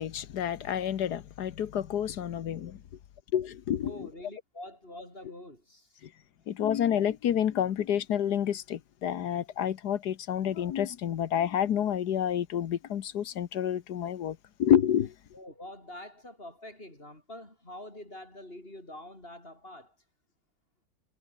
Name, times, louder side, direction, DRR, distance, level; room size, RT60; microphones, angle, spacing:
voice 1, 0.0-2.8 3.3-3.9 6.5-15.1, left 10 dB, 65° left, 1.5 m, -29 dB
voice 2, 3.8-6.1 15.3-20.0, left 1 dB, 30° left, 6.8 m, -46 dB
omnidirectional pair, 1.9 m